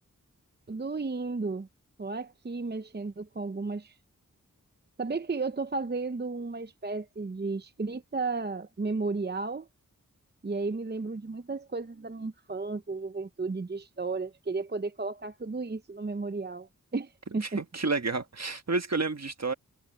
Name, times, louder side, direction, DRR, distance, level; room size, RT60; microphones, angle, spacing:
voice 1, 0.7-1.7 2.0-4.0 5.0-9.7 10.4-17.6, right 3 dB, 30° right, 0.7 m, -33 dB
voice 2, 17.3-19.5, right 3 dB, 50° right, 1.5 m, -30 dB
wide cardioid pair, 60°, 33 cm